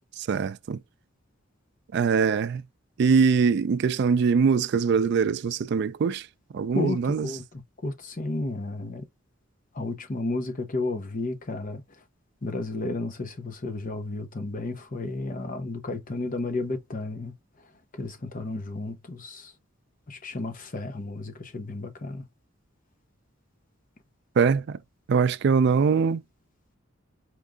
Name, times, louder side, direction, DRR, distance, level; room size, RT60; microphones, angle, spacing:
voice 1, 0.3-0.8 1.9-2.6 3.0-6.2 6.5-7.3 24.4-24.8 25.1-26.2, right 5 dB, 55° right, 0.3 m, -22 dB
voice 2, 6.7-9.0 9.7-11.8 12.4-17.3 17.9-19.5 20.1-22.2, left 2 dB, 40° left, 0.8 m, -32 dB
4.6 x 2.5 x 3.4 m
head